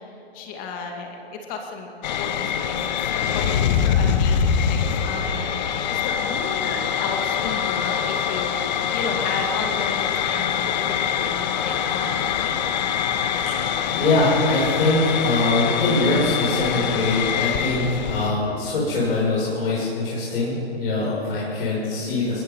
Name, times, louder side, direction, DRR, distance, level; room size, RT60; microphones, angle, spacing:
voice 1, 0.3-12.6, left 4 dB, 25° left, 3 dB, 2.3 m, -33 dB
sound 1, 2.0-18.3, left 8 dB, 45° left, 1.4 m, -24 dB
voice 2, 13.4-22.4, left 2 dB, 65° left, -7 dB, 6.8 m, -23 dB
23.5 x 21.0 x 5.6 m, 2.9 s
hypercardioid pair, 130°, 32 cm